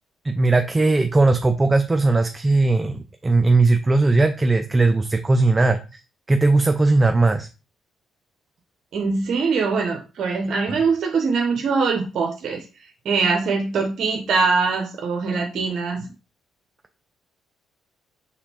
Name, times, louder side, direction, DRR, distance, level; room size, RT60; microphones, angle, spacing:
voice 1, 0.2-6.0 6.3-7.5, right 3 dB, 25° right, 0.4 m, -18 dB
voice 2, 8.9-12.6 13.0-16.1, right 4 dB, 60° right, 0.7 m, -22 dB
4.2 x 3.6 x 2.8 m
hypercardioid pair, 55°, 0 cm